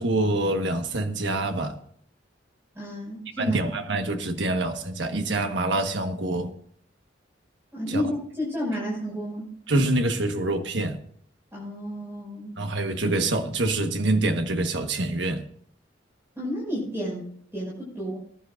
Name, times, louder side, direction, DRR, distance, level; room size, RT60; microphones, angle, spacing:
voice 1, 0.0-1.8 3.4-6.5 7.9-8.0 9.7-11.0 12.6-15.5, right 2 dB, 65° right, 1.4 m, -26 dB
voice 2, 2.7-3.6 7.7-9.5 11.5-12.6 16.4-18.2, equal, 15° right, 5.9 m, -31 dB
20.5 x 11.0 x 2.6 m
head